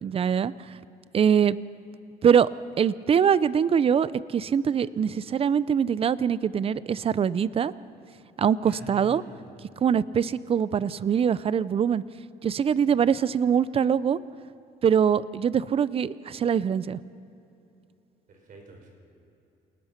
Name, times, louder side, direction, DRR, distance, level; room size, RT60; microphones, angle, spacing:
voice 1, 0.0-0.5 1.1-1.6 2.2-2.5 2.8-7.7 8.4-9.2 9.8-12.0 12.4-14.2 14.8-17.0, right 7 dB, 35° right, 18 dB, 0.5 m, -23 dB
voice 2, 8.6-9.4 18.3-18.9, right 2 dB, 55° right, 2 dB, 5.3 m, -46 dB
27.5 x 19.0 x 5.9 m, 2.8 s
cardioid pair, 110°, 17 cm